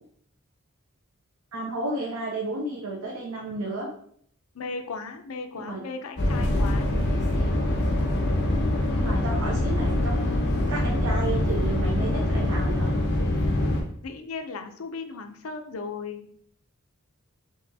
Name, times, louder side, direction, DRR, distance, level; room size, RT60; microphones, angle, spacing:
voice 1, 1.5-3.9 5.5-5.8 8.9-12.9, right 2 dB, 90° right, -2 dB, 0.7 m, -32 dB
voice 2, 4.5-6.9 14.0-16.3, left 4 dB, 80° left, 7 dB, 0.5 m, -36 dB
sound 1, 6.2-13.8, left 1 dB, 55° left, 0.9 m, -24 dB
5.6 x 2.9 x 2.6 m, 0.63 s
head